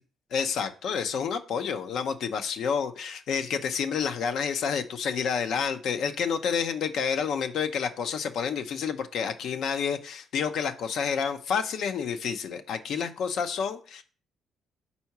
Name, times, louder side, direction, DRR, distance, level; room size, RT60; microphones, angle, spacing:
voice 1, 0.3-14.0, left 6 dB, 70° left, 8 dB, 0.7 m, -29 dB
4.7 x 4.2 x 5.8 m, 0.40 s
cardioid pair, 80°, 0 cm